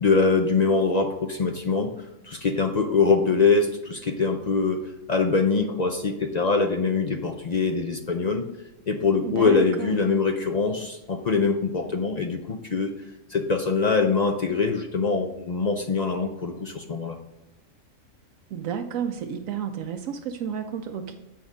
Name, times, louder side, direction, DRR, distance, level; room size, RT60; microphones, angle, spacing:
voice 1, 0.0-1.9 2.3-4.8 5.1-8.5 8.9-12.9 13.3-17.2, left 4 dB, 55° left, 5 dB, 0.4 m, -23 dB
voice 2, 9.2-10.0 18.5-21.2, right 8 dB, 80° right, 7 dB, 1.0 m, -31 dB
7.9 x 5.1 x 5.0 m, 0.98 s
omnidirectional pair, 1.4 m